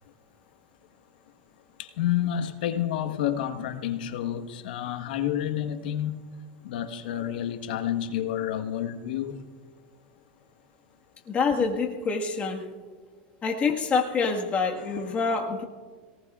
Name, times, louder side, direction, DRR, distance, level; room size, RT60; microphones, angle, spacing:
voice 1, 1.8-6.3 6.6-9.4 14.7-15.4, left 10 dB, 75° left, 1.3 m, -30 dB
voice 2, 11.3-12.7 13.4-15.6, left 4 dB, 30° left, 1.6 m, -26 dB
27.5 x 19.0 x 2.4 m
hypercardioid pair, 110°, 5 cm